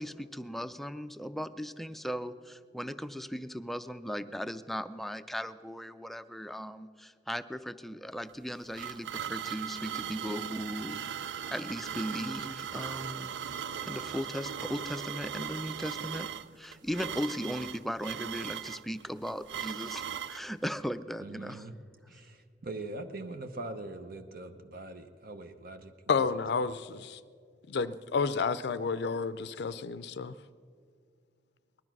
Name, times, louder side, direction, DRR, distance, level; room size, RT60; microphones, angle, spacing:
voice 1, 0.0-11.2 11.5-13.3 13.8-16.3 16.6-21.7, equal, ahead, 0.4 m, -37 dB
sound 1, 8.3-20.4, right 8 dB, 80° right, 0.4 m, -38 dB
voice 2, 21.2-21.7 22.1-25.9, right 2 dB, 55° right, 0.9 m, -42 dB
voice 3, 26.1-27.2 27.7-30.3, left 5 dB, 65° left, 0.5 m, -30 dB
19.5 x 12.5 x 6.1 m
head